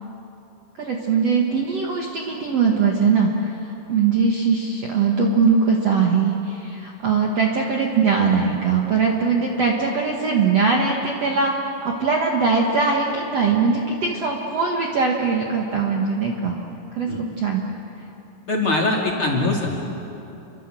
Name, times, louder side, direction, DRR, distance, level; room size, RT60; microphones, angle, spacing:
voice 1, 0.8-3.6 3.9-11.5 11.8-16.6 16.9-17.6, right 5 dB, 50° right, 0 dB, 2.1 m, -21 dB
voice 2, 18.5-19.8, left 2 dB, 35° left, -1 dB, 2.8 m, -22 dB
29.5 x 24.5 x 7.7 m, 2.9 s
omnidirectional pair, 4.9 m